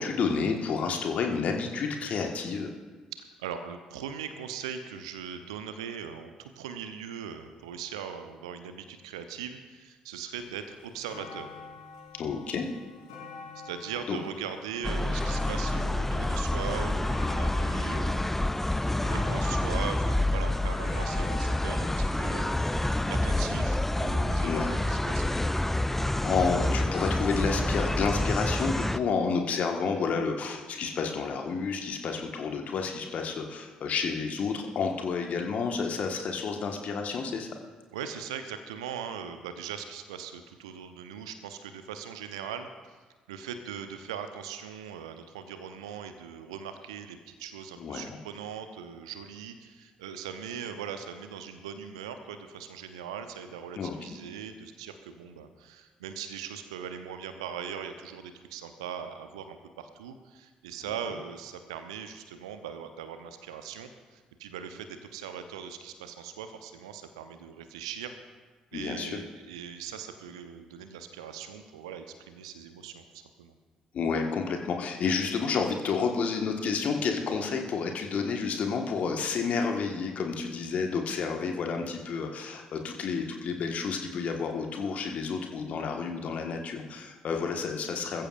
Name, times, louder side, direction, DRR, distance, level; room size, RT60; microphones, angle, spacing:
voice 1, 0.0-2.7 12.1-12.7 14.1-14.2 24.4-24.8 26.2-37.5 47.8-48.2 53.7-54.2 68.7-69.2 73.9-88.3, left 5 dB, 50° left, 3 dB, 1.6 m, -30 dB
voice 2, 3.4-11.5 13.6-22.7 23.1-25.3 37.9-42.7 43.3-68.1 68.7-73.5, right 8 dB, 70° right, 9 dB, 0.8 m, -40 dB
sound 1, 10.4-10.5 10.8-24.0 24.8-24.9, left 4 dB, 75° left, 4.3 m, -47 dB
sound 2, 14.8-29.0, left 1 dB, 10° left, 0.5 m, -28 dB
21.5 x 14.5 x 2.6 m, 1.3 s
figure-of-eight pair, 45°, 3 cm